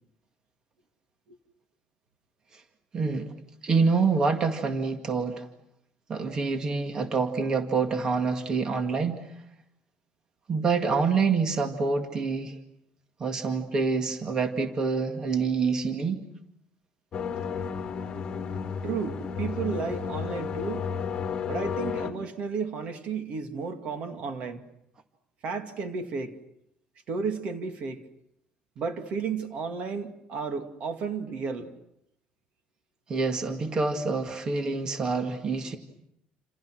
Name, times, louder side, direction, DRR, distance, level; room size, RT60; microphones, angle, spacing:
voice 1, 2.9-3.3 3.6-5.5 6.1-9.3 10.5-12.6 13.2-16.2 33.1-35.8, right 4 dB, 25° right, 5 dB, 2.1 m, -26 dB
sound 1, 17.1-22.1, left 6 dB, 30° left, 2.4 m, -32 dB
voice 2, 18.8-20.9 21.5-24.6 25.4-26.4 27.1-28.0 28.8-31.7, right 5 dB, 50° right, 6 dB, 2.3 m, -33 dB
29.0 x 28.0 x 6.3 m, 0.79 s
cardioid pair, 165°, 3 cm